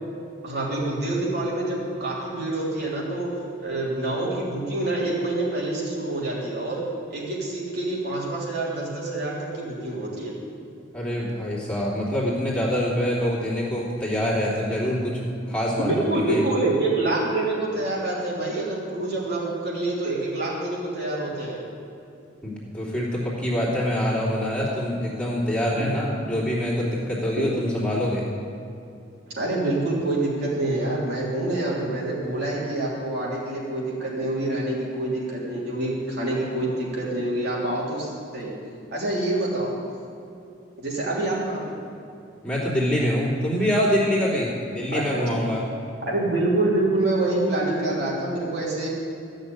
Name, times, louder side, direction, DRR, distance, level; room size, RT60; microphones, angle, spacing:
voice 1, 0.4-3.3 3.6-6.8 7.1-10.3 15.8-21.6 25.8-25.9 27.4-27.5 29.3-38.5 38.9-39.8 40.8-41.8 44.9-45.2 46.1-48.9, right 2 dB, 55° right, -5 dB, 3.4 m, -26 dB
voice 2, 10.9-16.4 22.4-28.2 42.4-45.6, equal, 5° left, -7 dB, 3.1 m, -25 dB
15.0 x 6.6 x 9.4 m, 2.7 s
head